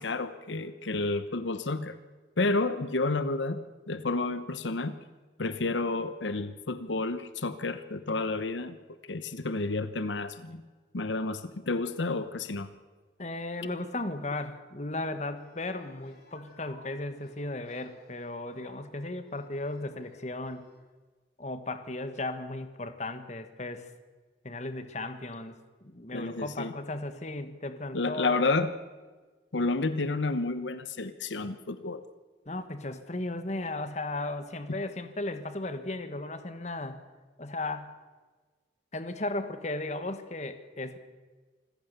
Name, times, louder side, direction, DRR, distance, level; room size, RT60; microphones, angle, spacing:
voice 1, 0.0-2.0 2.4-5.0 5.4-8.8 9.1-10.6 10.9-12.7 26.1-26.7 27.9-28.7 29.5-32.0 34.7-34.8, left 3 dB, 90° left, 12 dB, 1.0 m, -30 dB
voice 2, 13.2-20.6 21.4-23.9 24.4-28.4 32.4-37.0 37.4-38.0 38.9-41.0, left 2 dB, 40° left, 10 dB, 1.4 m, -36 dB
sound 1, 15.4-20.8, left 1 dB, 60° left, 5.9 m, -59 dB
25.5 x 15.0 x 6.9 m, 1.3 s
head